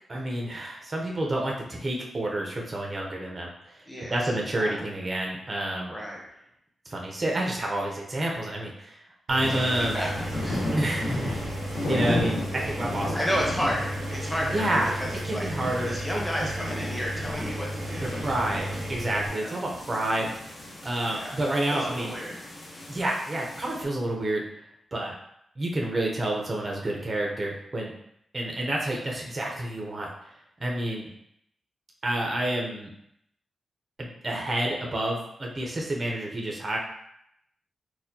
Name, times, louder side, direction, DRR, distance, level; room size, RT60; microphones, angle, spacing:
voice 1, 0.1-5.9 6.9-9.0 9.3-10.0 10.7-11.4 11.9-13.2 14.4-14.9 15.2-16.0 16.4-16.5 18.0-18.6 18.9-20.6 20.8-22.1 22.9-24.4 24.9-25.2 25.6-27.9 28.3-30.1 30.6-31.1 32.0-32.9 34.0-36.8, right 1 dB, 25° right, -2 dB, 0.5 m, -29 dB
voice 2, 3.9-4.3 4.6-4.8 5.9-6.2 9.5-9.6 9.9-10.7 13.1-15.5 15.8-18.3 19.3-19.6 21.1-21.4 21.7-22.4, equal, 5° left, -4 dB, 0.8 m, -32 dB
Engine, 9.3-19.3, right 1 dB, 90° right, 0.6 m, -34 dB
sound 1, 9.4-23.8, left 1 dB, 55° left, 0.7 m, -35 dB
4.2 x 2.2 x 2.6 m, 0.75 s
wide cardioid pair, 155°, 0 cm